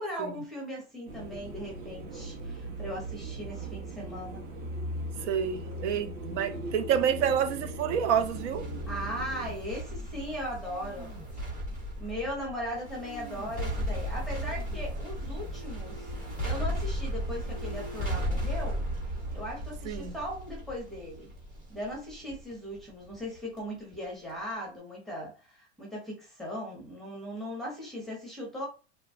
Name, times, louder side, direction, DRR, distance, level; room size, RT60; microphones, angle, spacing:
voice 1, 0.0-4.5 8.9-11.6 12.0-16.1 16.4-21.3 21.7-28.7, equal, ahead, 0.6 m, -38 dB
sound 1, 1.1-9.6, right 1 dB, 45° right, 0.8 m, -39 dB
voice 2, 5.2-8.7 19.8-20.1, right 8 dB, 75° right, 0.6 m, -28 dB
sound 2, 8.1-23.6 23.9-24.0, equal, 20° right, 1.0 m, -35 dB
3.0 x 2.2 x 2.5 m
supercardioid pair, 170°, 35 cm